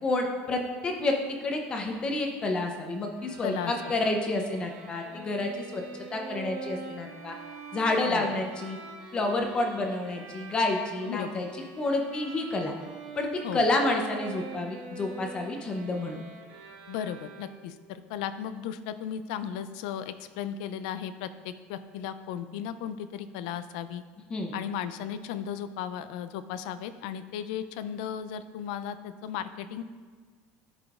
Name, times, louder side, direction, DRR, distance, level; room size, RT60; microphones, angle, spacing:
voice 1, 0.0-5.8 6.1-7.4 7.7-8.8 9.1-12.7 13.1-16.2 24.3-24.5, left 2 dB, 20° left, 3 dB, 0.6 m, -29 dB
Bowed string instrument, 3.2-17.8, right 4 dB, 80° right, 1.3 m, -44 dB
voice 2, 11.1-11.5 13.4-13.7 16.9-24.0 24.5-29.8, left 9 dB, 90° left, 12 dB, 0.4 m, -35 dB
11.0 x 5.0 x 2.4 m, 1.5 s
cardioid pair, 160°, 4 cm